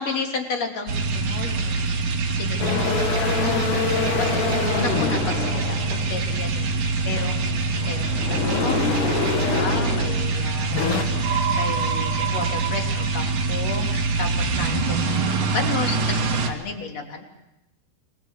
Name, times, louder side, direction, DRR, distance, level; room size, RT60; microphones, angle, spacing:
voice 1, 0.0-2.0 2.3-17.2, left 4 dB, 45° left, 3 dB, 4.0 m, -33 dB
sound 1, 0.9-16.5, right 3 dB, 60° right, 3.8 m, -25 dB
sound 2, 2.6-6.4 7.0-10.3 10.6-11.0, left 5 dB, 85° left, 4.9 m, -26 dB
sound 3, 11.2-14.6, right 7 dB, 85° right, 4.9 m, -29 dB
28.0 x 22.5 x 8.4 m, 0.88 s
omnidirectional pair, 4.6 m